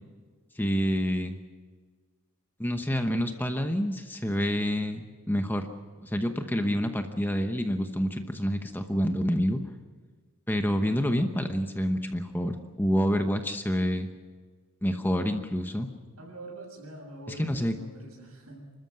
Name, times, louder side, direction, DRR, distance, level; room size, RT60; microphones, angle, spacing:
voice 1, 0.5-1.3 2.6-5.7 6.0-9.6 10.5-14.1 14.8-15.9 17.4-17.7, equal, 10° left, 6 dB, 0.9 m, -28 dB
voice 2, 6.4-6.7 16.2-18.7, right 2 dB, 80° right, 1 dB, 7.0 m, -45 dB
29.5 x 13.0 x 7.6 m, 1.5 s
head